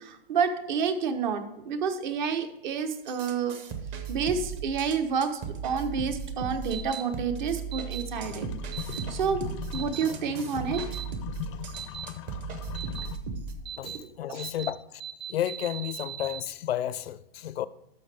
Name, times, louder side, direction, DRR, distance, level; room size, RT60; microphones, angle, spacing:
voice 1, 0.0-3.6 4.1-8.5 8.9-9.4 9.7-10.9 13.8-14.4, right 6 dB, 50° right, 1.1 m, -29 dB
sound 1, 3.1-13.5, right 5 dB, 30° right, 0.8 m, -37 dB
sound 2, 6.7-7.0 7.7-8.0 8.7-9.0 9.7-10.0 10.7-11.0 11.7-12.1 12.7-13.1 13.7-14.0 14.4-14.7 15.0-16.4, right 10 dB, 90° right, 1.4 m, -38 dB
sound 3, 8.2-13.2, left 10 dB, 30° left, 0.4 m, -40 dB
voice 2, 13.8-15.0 15.3-17.7, left 11 dB, 85° left, 0.5 m, -32 dB
12.0 x 5.9 x 3.4 m
hypercardioid pair, 150°, 30 cm